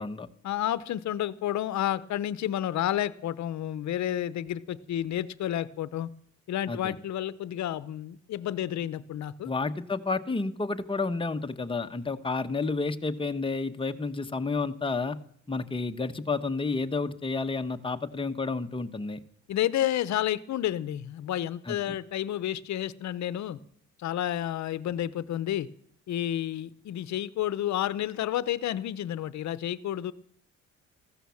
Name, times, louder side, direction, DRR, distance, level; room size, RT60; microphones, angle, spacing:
voice 1, 0.4-6.1 6.5-9.5 19.5-23.6 24.0-25.7 26.1-30.1, left 12 dB, 65° left, 16 dB, 0.8 m, -30 dB
voice 2, 6.7-7.0 9.4-15.2 15.5-19.2 21.7-21.9, left 3 dB, 15° left, 7 dB, 1.1 m, -30 dB
15.0 x 12.5 x 7.1 m, 0.63 s
cardioid pair, 90°, 30 cm